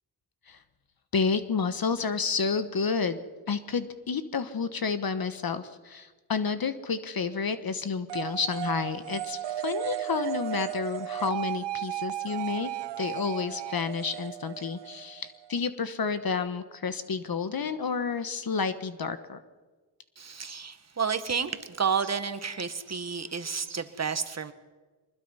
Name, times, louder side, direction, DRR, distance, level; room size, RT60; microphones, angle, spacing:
voice 1, 1.1-3.2 3.5-12.7 13.0-19.4, left 5 dB, 50° left, 1.2 m, -30 dB
sound 1, 8.1-15.6, right 13 dB, 70° right, 0.6 m, -35 dB
voice 2, 20.2-24.5, right 6 dB, 35° right, 1.5 m, -31 dB
23.5 x 21.0 x 5.6 m
cardioid pair, 85°, 45 cm